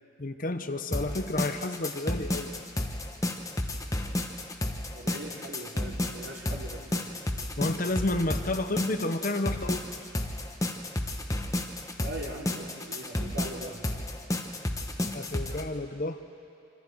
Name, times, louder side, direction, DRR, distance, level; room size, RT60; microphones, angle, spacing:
voice 1, 0.2-2.5 7.6-9.8 15.1-16.2, left 2 dB, 40° left, 8 dB, 0.9 m, -31 dB
sound 1, 0.9-15.6, left 1 dB, 15° left, 1.1 m, -32 dB
voice 2, 4.9-7.1 12.0-13.8, right 1 dB, 65° right, -2 dB, 3.3 m, -41 dB
26.5 x 26.0 x 4.7 m, 2.7 s
head